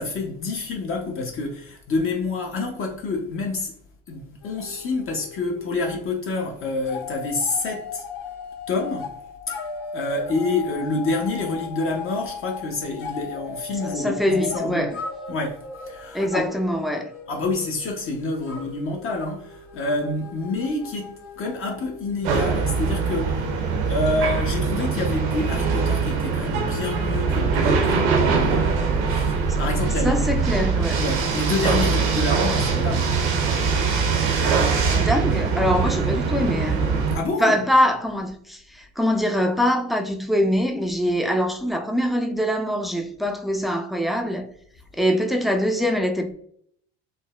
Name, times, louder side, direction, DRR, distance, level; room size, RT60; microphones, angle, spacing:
voice 1, 0.0-3.7 4.1-8.0 8.7-9.1 9.5-9.6 9.9-14.9 15.3-16.6 17.3-23.4 23.8-30.3 31.0-33.3 37.1-37.5, left 3 dB, 40° left, 0.7 m, -28 dB
sound 1, 4.4-6.0 6.3-23.4, left 5 dB, 70° left, 1.0 m, -37 dB
voice 2, 13.8-15.0 16.1-17.1 29.5-29.7 30.0-31.0 34.9-36.9 37.4-44.5 44.9-46.3, equal, ahead, 0.4 m, -23 dB
sound 2, 22.2-37.2, right 5 dB, 80° right, 0.7 m, -22 dB
3.8 x 2.1 x 2.3 m
supercardioid pair, 80°, 32 cm